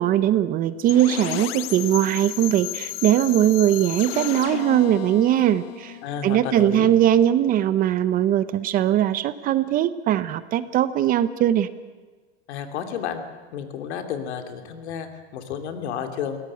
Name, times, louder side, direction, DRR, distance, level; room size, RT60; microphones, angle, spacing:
voice 1, 0.0-6.0 6.2-11.7, right 11 dB, 25° right, 15 dB, 0.7 m, -20 dB
sound 1, 0.9-6.7, left 15 dB, 55° left, 1.0 m, -33 dB
voice 2, 6.0-6.9 12.5-13.2 13.5-16.4, left 8 dB, 75° left, 6 dB, 3.0 m, -31 dB
21.0 x 17.0 x 9.6 m, 1.4 s
supercardioid pair, 145°, 34 cm